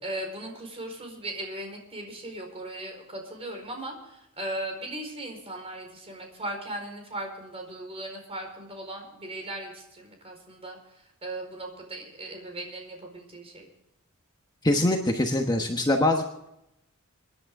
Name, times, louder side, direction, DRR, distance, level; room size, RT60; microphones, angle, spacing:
voice 1, 0.0-13.7, right 1 dB, 30° right, 3 dB, 4.6 m, -38 dB
voice 2, 14.6-16.5, left 1 dB, 20° left, 3 dB, 1.2 m, -24 dB
25.5 x 10.5 x 3.7 m, 0.84 s
head